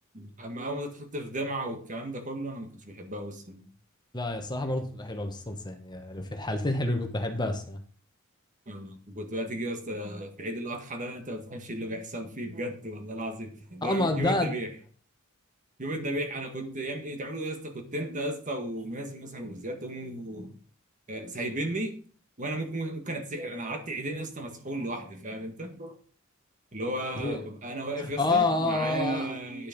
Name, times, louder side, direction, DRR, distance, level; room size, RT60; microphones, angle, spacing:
voice 1, 0.1-3.7 8.7-14.7 15.8-20.5 21.1-22.0 22.4-25.9 26.7-29.7, right 1 dB, 35° right, 1.7 m, -35 dB
voice 2, 4.1-7.8 13.8-14.5 27.2-27.4 28.0-29.3, left 2 dB, 20° left, 1.3 m, -28 dB
10.0 x 6.5 x 5.2 m
head